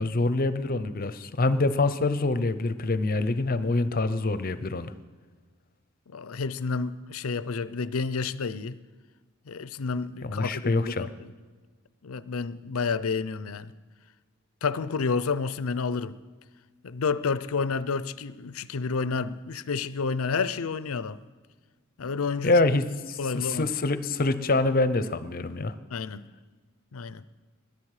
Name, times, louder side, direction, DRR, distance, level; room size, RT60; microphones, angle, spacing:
voice 1, 0.0-4.9 10.2-11.1 22.4-25.7, left 2 dB, 45° left, 0.7 m, -25 dB
voice 2, 6.1-8.8 9.5-11.3 12.0-13.7 14.6-16.2 16.8-21.2 22.0-22.5 23.2-23.7 25.9-26.2 26.9-27.2, left 4 dB, 90° left, 0.6 m, -30 dB
20.5 x 11.0 x 4.9 m
head